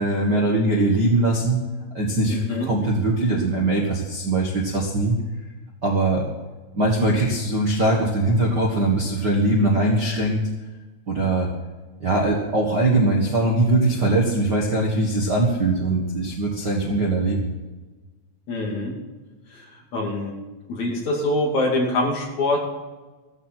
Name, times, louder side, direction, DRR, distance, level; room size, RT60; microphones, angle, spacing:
voice 1, 0.0-1.6 1.9-5.2 5.8-6.2 6.7-10.4 11.1-11.5 12.0-17.5, right 2 dB, 85° right, -2 dB, 0.9 m, -21 dB
voice 2, 2.3-2.7 18.5-18.9 19.5-19.6 19.9-20.4 20.7-22.7, left 2 dB, 50° left, -1 dB, 3.4 m, -24 dB
15.5 x 14.0 x 4.5 m, 1.2 s
omnidirectional pair, 4.9 m